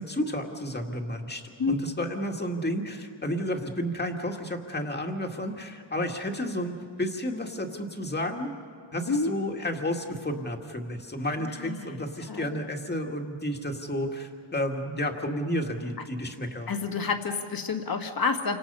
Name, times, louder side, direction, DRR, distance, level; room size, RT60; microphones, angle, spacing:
voice 1, 0.0-8.5 8.9-16.7, equal, 20° left, 2 dB, 2.1 m, -31 dB
voice 2, 9.1-9.4 11.4-12.6 16.7-18.6, left 4 dB, 45° left, 5 dB, 1.9 m, -29 dB
29.0 x 25.5 x 5.6 m, 2.3 s
wide cardioid pair, 130°, 48 cm